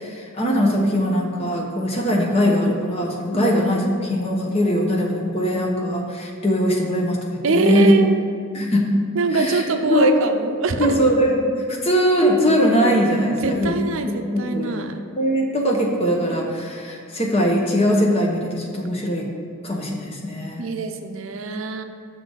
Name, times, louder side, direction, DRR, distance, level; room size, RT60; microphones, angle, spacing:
voice 1, 0.0-8.0 8.5-8.9 9.3-9.6 9.9-10.2 10.8-13.7 14.0-14.8 15.2-19.3 19.6-20.6, equal, 25° left, -1 dB, 0.9 m, -21 dB
voice 2, 7.4-8.2 9.1-10.9 13.3-15.0 20.6-21.8, right 3 dB, 60° right, 6 dB, 0.5 m, -23 dB
6.5 x 3.9 x 6.4 m, 2.4 s
head